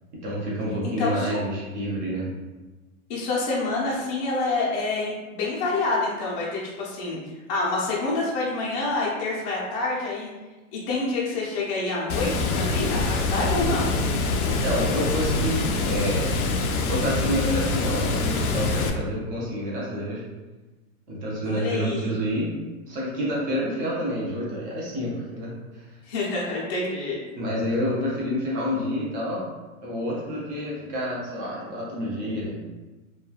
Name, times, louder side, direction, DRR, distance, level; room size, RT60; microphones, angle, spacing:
voice 1, 0.2-2.3 14.4-16.3 16.8-20.2 21.1-22.5 22.9-25.9 27.3-29.5 29.8-32.6, equal, 20° right, -5 dB, 0.5 m, -28 dB
voice 2, 0.8-1.4 3.1-7.2 7.5-10.3 10.7-13.9 21.4-22.1 26.1-27.2, left 3 dB, 25° left, -5 dB, 0.5 m, -27 dB
Water, 12.1-18.9, left 3 dB, 85° left, 0.6 m, -25 dB
3.0 x 2.3 x 2.3 m, 1.2 s
hypercardioid pair, 135°, 43 cm